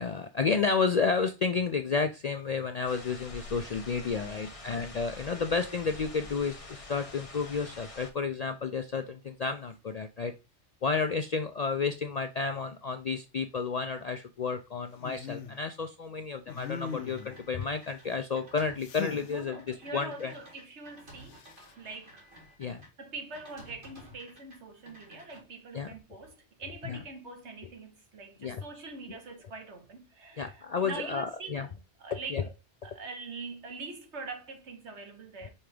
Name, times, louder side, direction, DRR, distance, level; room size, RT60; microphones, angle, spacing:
voice 1, 0.0-10.3 10.8-20.3 22.6-22.8 25.7-25.9 26.8-27.0 28.4-28.6 29.1-29.2 30.4-31.7 32.3-32.4, left 5 dB, 55° left, 0.4 m, -31 dB
sound 1, 2.8-8.1, left 2 dB, 30° left, 1.2 m, -46 dB
voice 2, 4.1-4.5 19.2-21.4 21.8-22.3 23.0-31.7 32.0-32.4 32.8-35.5, right 3 dB, 75° right, 1.6 m, -43 dB
sound 2, 15.0-15.6 16.5-17.4 18.8-19.3 21.3-21.7, left 7 dB, 80° left, 1.0 m, -39 dB
sound 3, 16.5-22.9 23.3-24.6 24.8-25.4, equal, 45° right, 2.2 m, -53 dB
5.6 x 3.4 x 4.9 m
omnidirectional pair, 1.2 m